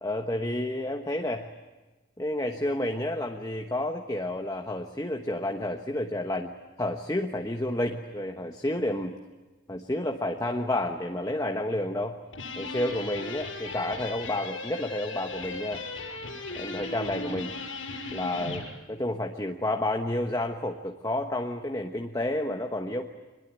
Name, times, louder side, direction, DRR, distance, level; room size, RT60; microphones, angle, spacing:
voice 1, 0.0-1.5 2.2-6.5 6.8-9.1 9.7-12.2 12.6-15.8 16.5-17.5 18.1-23.1, left 1 dB, 20° left, 3 dB, 1.2 m, -30 dB
sound 1, 12.3-18.7, left 3 dB, 90° left, 6.9 m, -37 dB
25.5 x 21.5 x 9.1 m, 1.2 s
head